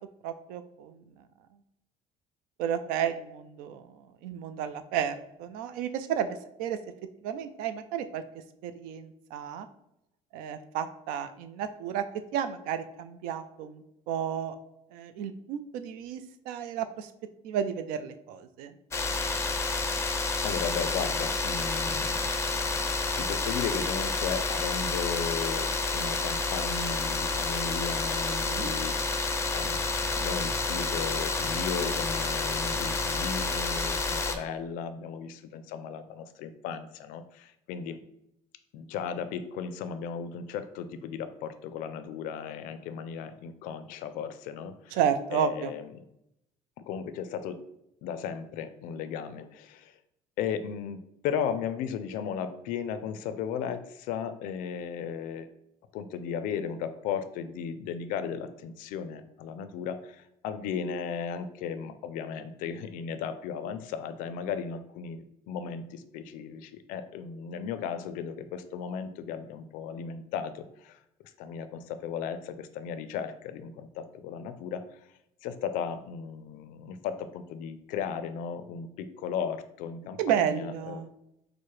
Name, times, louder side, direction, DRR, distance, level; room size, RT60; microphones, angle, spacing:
voice 1, 0.2-1.0 2.6-3.8 4.2-6.8 7.2-8.2 8.6-9.7 10.3-12.0 12.3-14.6 14.9-16.2 16.5-17.1 17.4-18.7 28.3-28.7 44.9-45.7 80.2-81.1, right 8 dB, 85° right, 10 dB, 0.4 m, -32 dB
sound 1, 18.9-34.4, left 3 dB, 20° left, 0.4 m, -29 dB
voice 2, 20.4-22.3 23.2-29.0 29.5-29.8 30.1-38.0 38.7-45.0 45.3-45.9 46.8-47.6 48.0-49.9 50.4-55.5 55.9-71.0 71.4-74.8 75.4-81.1, left 7 dB, 80° left, 10 dB, 0.4 m, -35 dB
4.5 x 2.0 x 3.1 m, 0.82 s
cardioid pair, 115°, 14 cm